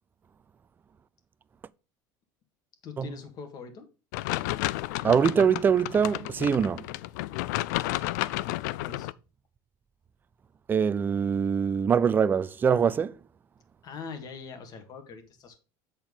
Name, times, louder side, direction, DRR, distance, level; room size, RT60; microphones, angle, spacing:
voice 1, 2.8-3.8 8.3-9.1 13.8-15.6, left 5 dB, 40° left, 1.9 m, -43 dB
sound 1, 4.1-9.1, left 17 dB, 85° left, 0.4 m, -32 dB
voice 2, 5.0-6.8 10.7-13.2, right 7 dB, 20° right, 0.4 m, -23 dB
7.8 x 4.4 x 5.4 m
supercardioid pair, 130°, 9 cm